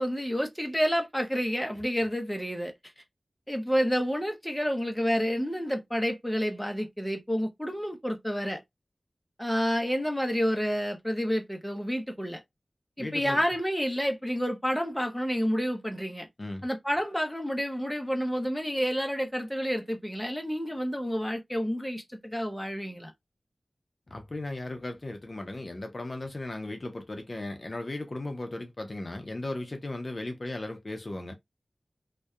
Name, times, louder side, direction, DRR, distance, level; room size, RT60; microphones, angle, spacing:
voice 1, 0.0-2.7 3.5-8.6 9.4-12.4 13.0-16.3 16.6-23.1, equal, 5° left, 0.7 m, -29 dB
voice 2, 13.0-13.4 16.4-16.7 24.1-31.4, left 2 dB, 45° left, 0.6 m, -36 dB
2.6 x 2.1 x 2.3 m
wide cardioid pair, 70°, 0 cm